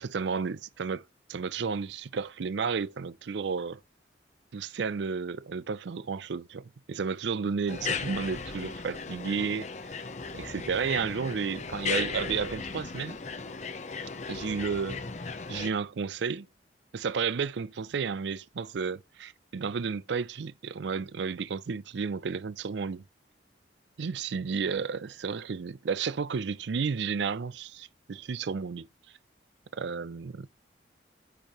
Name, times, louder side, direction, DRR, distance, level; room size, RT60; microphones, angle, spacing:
voice 1, 0.0-3.8 4.5-10.0 10.3-13.2 14.3-15.0 15.5-16.5 16.9-23.0 24.0-28.9 29.7-30.5, right 5 dB, 70° right, 0.4 m, -32 dB
sound 1, 7.7-15.7, left 5 dB, 40° left, 0.6 m, -36 dB
10.0 x 4.5 x 3.0 m
head